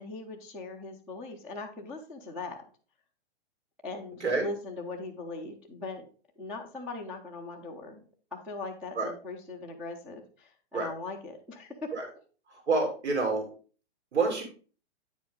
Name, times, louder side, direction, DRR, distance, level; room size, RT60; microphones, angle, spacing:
voice 1, 0.0-2.6 3.8-6.1 6.4-8.0 8.3-11.9, left 3 dB, 5° right, -3 dB, 0.3 m, -40 dB
voice 2, 12.5-13.5 14.1-14.4, right 3 dB, 80° right, 2 dB, 2.9 m, -27 dB
9.1 x 5.2 x 3.6 m, 0.38 s
hypercardioid pair, 135°, 33 cm